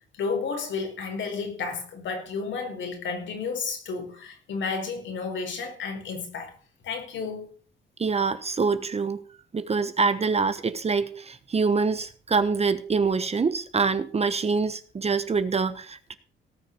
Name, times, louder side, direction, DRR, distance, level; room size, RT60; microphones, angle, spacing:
voice 1, 0.2-6.5 6.8-7.5, left 4 dB, 70° left, 4 dB, 4.8 m, -32 dB
voice 2, 8.0-9.2 9.5-16.1, right 4 dB, 30° right, 12 dB, 1.1 m, -25 dB
18.0 x 6.5 x 6.8 m, 0.42 s
cardioid pair, 90°, 20 cm